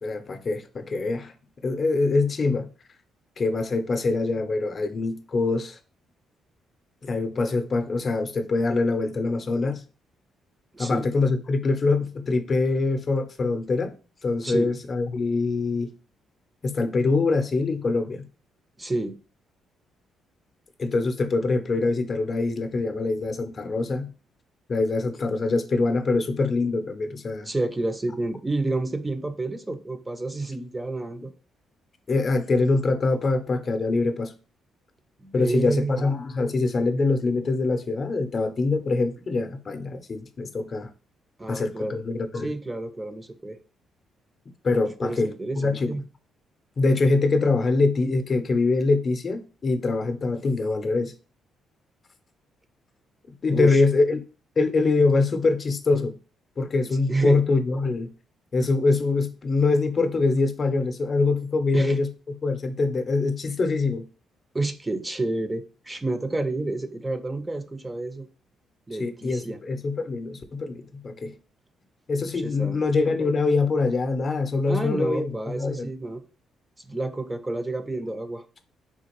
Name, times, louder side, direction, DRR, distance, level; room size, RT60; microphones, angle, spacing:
voice 1, 0.0-1.3 1.6-2.7 3.4-5.8 7.0-9.8 10.8-13.9 14.2-15.9 16.6-18.3 20.8-24.1 24.7-27.5 32.1-34.3 35.3-40.9 41.5-42.5 44.6-46.0 46.8-51.1 53.4-54.2 54.6-56.2 56.6-58.1 58.5-64.1 69.0-71.4 72.1-75.9, left 3 dB, 40° left, 0.5 m, -24 dB
voice 2, 10.7-11.1 14.4-14.7 18.8-19.2 27.4-31.3 35.2-36.0 41.4-42.0 42.4-43.6 45.0-46.0 53.5-53.8 56.9-57.4 61.7-62.0 64.5-68.3 68.9-69.6 72.4-72.8 74.7-76.2 76.8-78.4, right 2 dB, 15° right, 0.4 m, -29 dB
3.7 x 2.5 x 2.9 m
cardioid pair, 90°, 0 cm